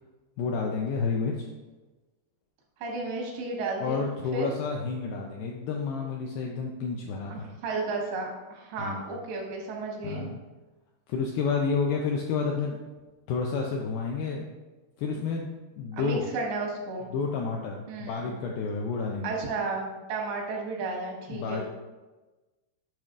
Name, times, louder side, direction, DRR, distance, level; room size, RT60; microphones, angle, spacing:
voice 1, 0.4-1.5 3.8-7.4 8.8-9.1 10.0-10.4 11.1-12.8 13.3-14.4 15.0-15.5 15.8-16.3 17.1-19.4 21.3-21.6, left 5 dB, 85° left, 0 dB, 2.1 m, -30 dB
voice 2, 2.8-4.1 4.3-4.5 7.3-10.3 15.9-17.1 17.9-18.3 19.2-21.6, right 3 dB, 90° right, -1 dB, 3.5 m, -33 dB
9.2 x 5.9 x 2.4 m, 1.2 s
omnidirectional pair, 4.9 m